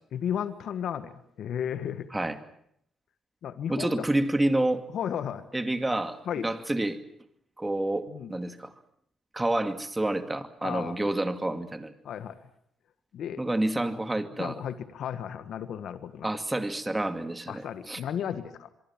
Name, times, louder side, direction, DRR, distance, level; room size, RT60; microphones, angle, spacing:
voice 1, 0.1-2.1 3.4-4.0 4.9-5.4 6.3-6.5 8.1-8.3 10.6-11.0 12.0-12.4 13.1-13.4 14.4-16.3 17.5-18.7, left 9 dB, 70° left, 11 dB, 1.5 m, -34 dB
voice 2, 3.7-4.8 5.5-7.0 7.6-8.7 9.3-11.9 13.4-14.6 16.2-18.0, right 1 dB, 15° right, 9 dB, 2.4 m, -28 dB
25.5 x 23.5 x 7.4 m, 0.70 s
cardioid pair, 90°, 0 cm